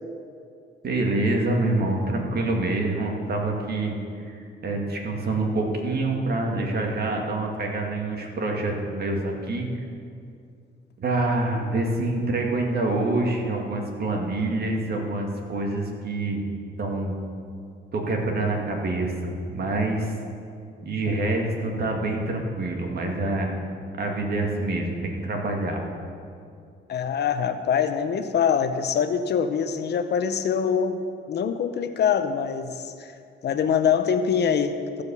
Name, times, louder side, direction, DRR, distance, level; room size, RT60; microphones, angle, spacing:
voice 1, 0.8-4.0 4.3-4.4 4.6-9.8 11.0-16.5 16.8-17.1 17.9-20.1 20.8-23.6 24.0-25.8, right 2 dB, 55° right, 1 dB, 2.0 m, -26 dB
voice 2, 26.9-33.1 33.4-35.0, left 7 dB, 60° left, 9 dB, 0.7 m, -24 dB
14.5 x 5.1 x 7.0 m, 2.4 s
cardioid pair, 90°, 20 cm